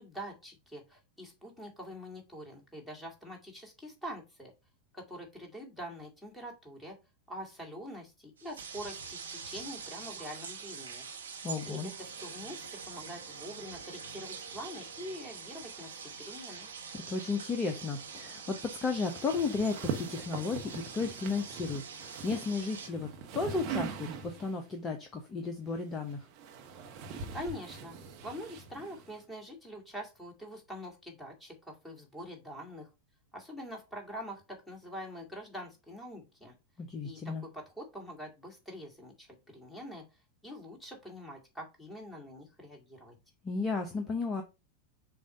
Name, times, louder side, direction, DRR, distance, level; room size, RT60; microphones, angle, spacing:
voice 1, 0.0-4.5 4.9-7.0 7.3-11.1 11.6-16.7 27.3-28.0 28.2-32.9 33.3-36.6 37.0-40.0 40.4-43.1, equal, 5° left, 2.2 m, -45 dB
sound 1, 8.4-22.9, right 5 dB, 70° right, 1.2 m, -45 dB
voice 2, 11.4-11.9 16.9-26.3 36.8-37.5 43.4-44.4, left 4 dB, 20° left, 0.9 m, -34 dB
sound 2, 19.0-24.6 25.7-29.2, right 6 dB, 40° right, 1.1 m, -42 dB
6.8 x 2.6 x 5.2 m
figure-of-eight pair, 90°, 0 cm